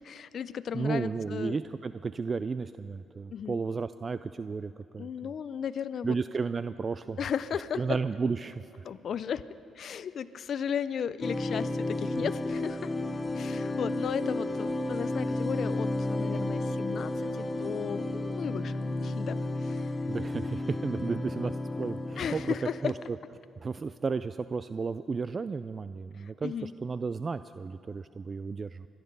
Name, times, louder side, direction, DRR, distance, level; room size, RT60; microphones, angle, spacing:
voice 1, 0.0-1.6 3.3-3.6 5.0-6.2 7.2-8.0 8.8-9.4 9.8-12.9 13.3-18.7 19.0-19.9 22.2-22.9 26.2-26.7, left 8 dB, 60° left, 13 dB, 0.4 m, -35 dB
voice 2, 0.7-5.1 6.0-7.2 7.8-8.6 12.1-12.3 20.1-22.5 22.8-22.9 23.6-28.9, right 4 dB, 35° right, 13 dB, 0.3 m, -33 dB
sound 1, 11.2-23.1, left 2 dB, 20° left, 0.8 m, -32 dB
25.0 x 10.5 x 5.4 m, 3.0 s
cardioid pair, 90°, 0 cm